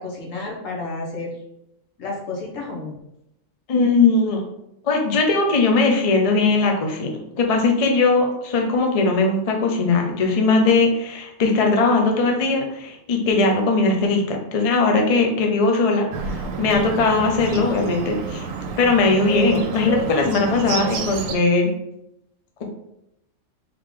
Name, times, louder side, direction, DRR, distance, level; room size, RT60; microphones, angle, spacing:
voice 1, 0.0-1.4 2.0-2.9 17.1-17.6, left 3 dB, 75° left, -2 dB, 1.4 m, -31 dB
voice 2, 3.7-4.4 4.8-18.5 18.8-21.7, left 3 dB, 40° left, 2 dB, 0.5 m, -19 dB
Bird, 16.1-21.3, right 4 dB, 80° right, 0.9 m, -29 dB
3.8 x 3.2 x 3.6 m, 0.83 s
omnidirectional pair, 1.4 m